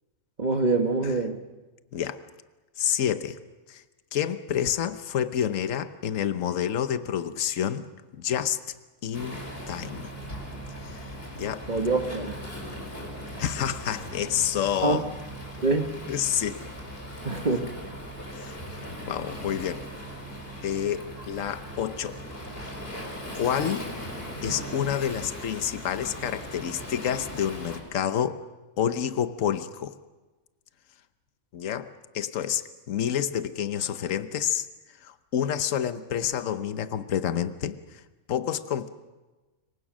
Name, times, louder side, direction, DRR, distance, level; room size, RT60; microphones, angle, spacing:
voice 1, 0.4-1.4 11.7-12.4 14.8-15.1 15.6-16.0 17.2-17.7, right 3 dB, 35° right, 5 dB, 1.4 m, -25 dB
voice 2, 2.8-3.4 3.7-3.8 4.1-7.9 8.1-8.6 9.0-9.4 9.7-10.1 10.8-11.1 11.4-11.7 13.4-15.1 16.1-16.6 18.3-18.6 19.1-19.8 20.6-22.2 23.3-23.9 24.4-28.4 28.8-29.9 31.5-31.9 32.1-34.7 35.0-38.0 38.3-38.9, left 9 dB, 70° left, 12 dB, 1.3 m, -28 dB
Waves surf, 9.1-27.8, equal, 45° left, 4.7 m, -39 dB
26.5 x 23.5 x 6.2 m, 1.2 s
omnidirectional pair, 1.4 m